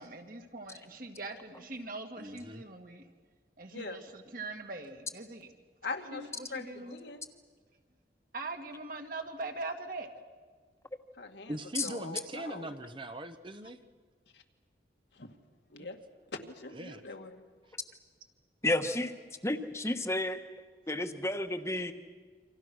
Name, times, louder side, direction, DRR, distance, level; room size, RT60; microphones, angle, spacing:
voice 1, 0.0-3.0 3.6-5.5 6.1-7.0 8.3-10.1, right 2 dB, 50° right, 4 dB, 2.3 m, -42 dB
voice 2, 2.2-2.6 11.5-13.8 16.7-17.0, right 1 dB, 30° right, 9 dB, 0.9 m, -40 dB
voice 3, 5.8-7.3 11.2-11.6 11.8-12.7 14.3-14.4 15.1-15.3 15.7-16.0 16.4-17.4, left 3 dB, 75° left, 4 dB, 2.1 m, -42 dB
voice 4, 18.6-19.1 19.4-20.4 20.9-21.9, left 1 dB, 15° left, 8 dB, 1.3 m, -31 dB
28.0 x 25.5 x 6.3 m, 1.5 s
head